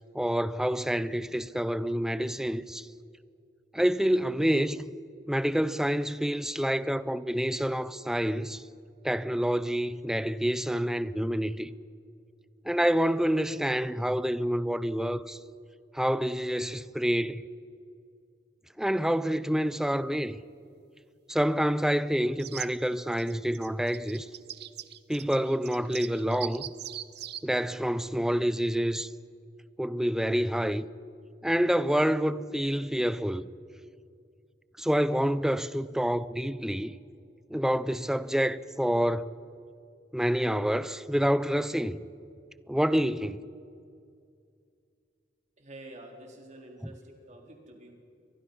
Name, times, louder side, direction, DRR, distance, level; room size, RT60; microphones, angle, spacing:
voice 1, 0.1-2.8 3.7-4.8 5.3-8.6 9.0-11.7 12.7-15.4 15.9-17.4 18.8-20.4 21.3-24.3 25.1-26.7 27.4-29.1 29.8-30.8 31.4-33.5 34.8-36.9 37.5-39.3 40.1-42.0 42.7-43.4, equal, 5° right, 0.5 m, -27 dB
sound 1, 22.4-22.7 23.1-27.4, right 12 dB, 60° right, 0.8 m, -41 dB
voice 2, 45.6-47.9, right 1 dB, 40° right, 4.1 m, -48 dB
29.5 x 24.0 x 5.6 m
head